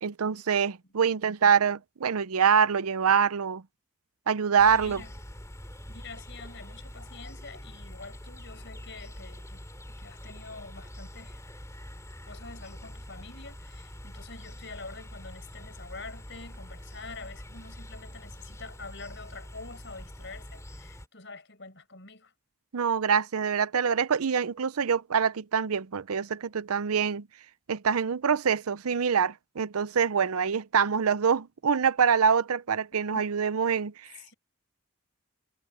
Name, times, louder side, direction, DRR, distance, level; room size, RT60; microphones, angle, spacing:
voice 1, 0.0-3.6 4.3-5.0 22.7-27.3 27.7-33.9, right 6 dB, 85° right, 0.6 m, -25 dB
sound 1, 4.6-21.1, equal, 15° left, 4.0 m, -45 dB
voice 2, 4.8-5.1 5.9-11.4 12.3-22.3 33.1-33.2 34.2-34.3, left 3 dB, 55° left, 5.5 m, -46 dB
head